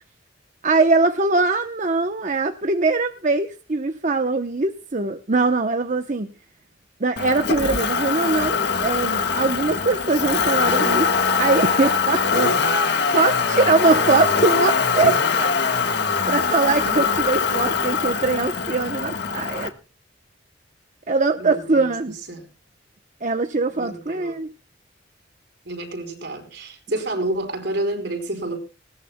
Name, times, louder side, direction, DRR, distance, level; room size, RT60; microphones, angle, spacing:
voice 1, 0.6-6.3 7.0-11.1 11.3-12.6 13.1-15.5 16.3-19.7 21.1-22.1 23.2-24.5, right 3 dB, 40° right, 0.8 m, -22 dB
Motor vehicle (road), 7.2-19.7, left 5 dB, 60° left, 1.4 m, -22 dB
voice 2, 16.9-17.3 21.4-21.9 22.3-22.5 23.8-24.4 25.6-28.6, right 1 dB, 60° right, 4.5 m, -29 dB
20.0 x 18.5 x 2.2 m
head